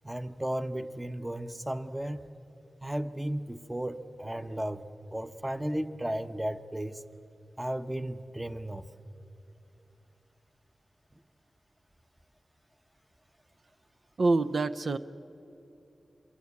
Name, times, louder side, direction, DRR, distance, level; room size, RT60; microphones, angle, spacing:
voice 1, 0.0-2.2 2.8-4.8 5.1-7.0 7.6-8.9, right 1 dB, 10° right, 11 dB, 0.9 m, -34 dB
voice 2, 14.2-15.0, right 3 dB, 60° right, 11 dB, 0.6 m, -26 dB
27.0 x 23.0 x 8.4 m, 2.9 s
wide cardioid pair, 75°, 0 cm